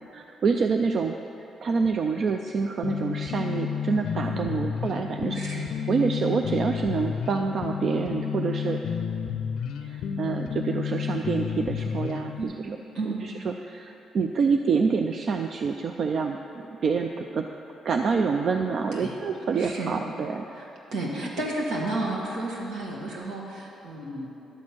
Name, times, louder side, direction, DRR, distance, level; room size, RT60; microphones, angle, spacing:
voice 1, 0.1-1.2 1.6-5.4 5.9-8.8 9.8-12.8 13.1-16.4 16.8-17.5 17.8-20.4, right 5 dB, 55° right, 5 dB, 0.4 m, -27 dB
sound 1, 2.8-12.4, left 7 dB, 75° left, 0.4 m, -31 dB
voice 2, 4.3-4.6 5.3-5.7 12.4-12.6 12.9-13.2 18.9-19.1 19.5-19.9 20.5-20.7 20.9-24.3, right 2 dB, 80° right, -3 dB, 1.9 m, -32 dB
11.5 x 4.3 x 7.5 m, 3.0 s
cardioid pair, 90°, 0 cm